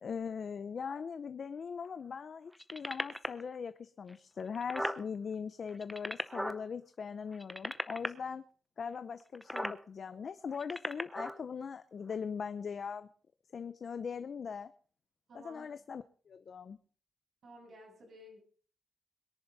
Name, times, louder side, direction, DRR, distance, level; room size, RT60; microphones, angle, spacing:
voice 1, 0.0-8.4 8.8-13.1 13.5-14.7 15.3-16.8, left 6 dB, 45° left, 11 dB, 0.6 m, -40 dB
sound 1, 2.6-3.4 4.1-4.2 4.4-5.0 5.7-6.6 7.3-8.1 9.3-9.8 10.5-11.4 12.1-12.2, equal, ahead, 0.7 m, -36 dB
voice 2, 15.3-15.7 17.4-18.4, equal, 55° right, 1 dB, 7.9 m, -54 dB
22.5 x 10.5 x 4.0 m, 0.43 s
wide cardioid pair, 165°, 0 cm